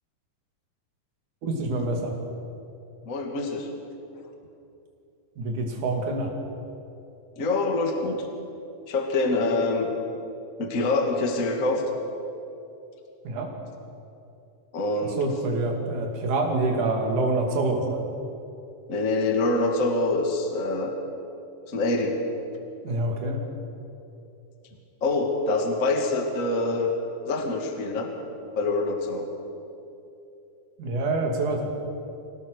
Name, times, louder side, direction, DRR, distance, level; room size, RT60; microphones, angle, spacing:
voice 1, 1.4-2.2 5.4-6.3 13.2-13.5 15.0-18.0 22.8-23.4 30.8-31.7, right 2 dB, 70° right, 1 dB, 3.9 m, -26 dB
voice 2, 3.1-3.7 7.4-8.3 8.9-9.9 10.6-11.8 14.7-15.2 18.9-20.9 21.7-22.2 25.0-26.9 27.3-28.1 28.6-29.3, left 2 dB, 30° left, 3 dB, 1.9 m, -25 dB
26.0 x 17.5 x 6.6 m, 2.8 s
omnidirectional pair, 3.8 m